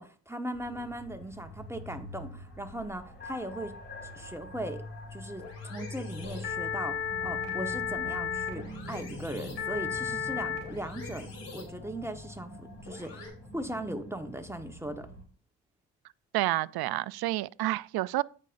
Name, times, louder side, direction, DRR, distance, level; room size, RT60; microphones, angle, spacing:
voice 1, 0.0-3.8 4.1-4.8 5.1-11.3 11.5-15.1, right 1 dB, 5° right, 1.2 m, -39 dB
sound 1, 0.5-15.2, left 2 dB, 25° left, 2.6 m, -44 dB
sound 2, 4.6-13.3, left 7 dB, 70° left, 3.6 m, -36 dB
voice 2, 16.3-18.2, right 16 dB, 55° right, 0.5 m, -29 dB
14.5 x 5.3 x 2.6 m
hypercardioid pair, 50°, 45 cm